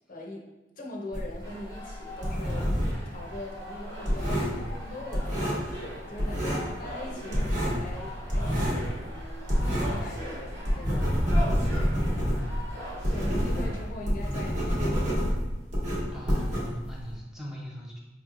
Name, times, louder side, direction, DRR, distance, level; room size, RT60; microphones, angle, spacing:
voice 1, 0.1-0.5 0.8-2.7 3.0-11.2 12.7-15.1, left 1 dB, 50° left, -1 dB, 0.6 m, -42 dB
sound 1, 1.1-3.1 3.3-5.9 6.2-6.8 7.0-10.1 10.4-17.1, equal, 40° right, 1.0 m, -27 dB
sound 2, 1.4-13.8, equal, 70° right, 1.2 m, -41 dB
voice 2, 16.1-18.0, equal, 5° right, -3 dB, 0.5 m, -40 dB
4.9 x 3.0 x 2.3 m, 1.1 s
head